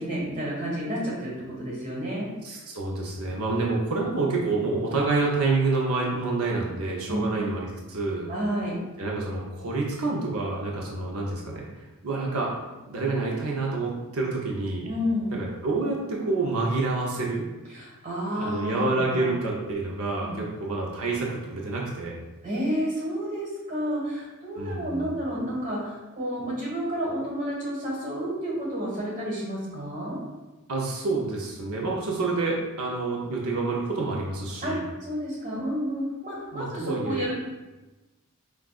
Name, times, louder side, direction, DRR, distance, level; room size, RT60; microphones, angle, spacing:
voice 1, 0.0-1.3 1.6-2.3 7.1-7.4 8.3-8.7 14.9-15.3 17.7-19.2 20.2-20.4 22.4-30.2 34.6-37.3, equal, 35° right, -5 dB, 1.4 m, -30 dB
voice 2, 2.4-8.3 9.0-11.7 12.0-12.5 12.9-14.9 15.3-17.4 18.3-22.1 24.6-25.1 30.7-34.8 36.5-37.3, right 3 dB, 70° right, -3 dB, 0.7 m, -28 dB
6.0 x 2.4 x 2.4 m, 1.1 s
head